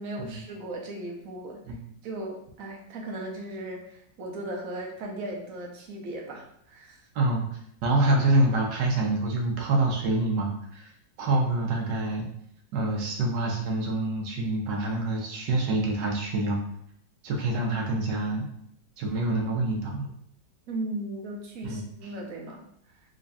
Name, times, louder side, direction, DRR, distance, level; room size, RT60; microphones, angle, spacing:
voice 1, 0.0-1.8 2.0-7.0 20.7-22.6, right 1 dB, 60° right, 0 dB, 1.0 m, -37 dB
voice 2, 7.1-7.5 7.8-10.9 11.2-12.3 12.7-16.6 17.2-18.5 19.0-20.1 21.6-21.8, right 2 dB, 85° right, 0 dB, 1.4 m, -26 dB
3.9 x 3.0 x 2.6 m, 0.72 s
omnidirectional pair, 1.8 m